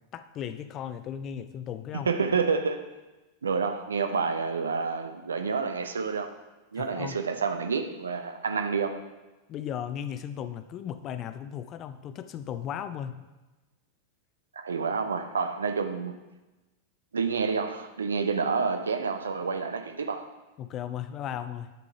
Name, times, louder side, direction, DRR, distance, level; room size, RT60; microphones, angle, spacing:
voice 1, 0.0-2.1 6.8-7.2 9.5-13.3 20.6-21.7, left 9 dB, 35° left, 11 dB, 0.4 m, -36 dB
voice 2, 1.9-2.8 3.4-6.3 6.7-9.0 14.6-16.1 17.1-20.3, right 5 dB, 70° right, 8 dB, 0.6 m, -29 dB
9.1 x 3.8 x 5.0 m, 1.1 s
figure-of-eight pair, 90°, 0 cm